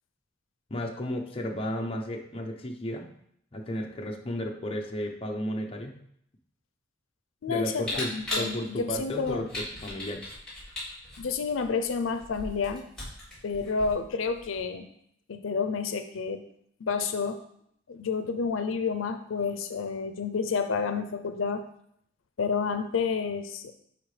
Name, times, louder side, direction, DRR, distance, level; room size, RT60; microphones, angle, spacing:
voice 1, 0.7-3.1 3.5-6.0 7.5-8.1 8.4-10.4, left 1 dB, 30° left, 1 dB, 0.7 m, -33 dB
voice 2, 7.4-7.9 8.1-9.5 11.2-12.8 13.4-14.9 15.3-16.4 16.8-17.4 17.9-21.6 22.4-23.7, left 5 dB, 85° left, 8 dB, 0.5 m, -30 dB
Camera, 7.8-14.6, left 1 dB, 5° left, 3.0 m, -38 dB
9.9 x 3.7 x 3.2 m, 0.70 s
head